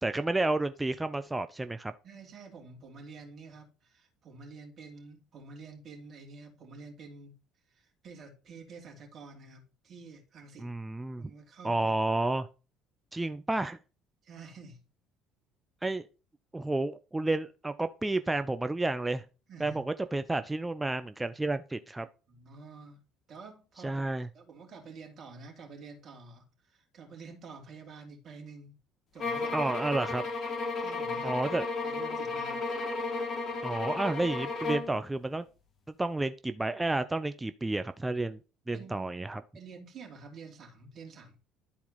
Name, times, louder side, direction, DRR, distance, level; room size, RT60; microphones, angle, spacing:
voice 1, 0.0-1.9 10.6-11.3 11.6-12.5 13.1-13.8 15.8-16.1 16.5-19.2 19.6-22.1 23.8-24.3 29.5-30.2 31.2-31.7 33.6-35.4 36.0-38.4 38.7-39.4, right 2 dB, 15° right, 0.6 m, -31 dB
voice 2, 2.0-7.4 7.7-10.7 11.2-11.9 14.2-14.8 19.5-19.8 22.3-23.0 23.3-24.0 24.3-28.7 29.1-29.7 30.8-31.4 31.8-32.6 38.7-39.1 39.5-41.4, right 4 dB, 45° right, 2.8 m, -49 dB
sound 1, 29.2-35.0, left 3 dB, 40° left, 1.8 m, -34 dB
11.5 x 4.2 x 4.1 m
figure-of-eight pair, 55°, 0 cm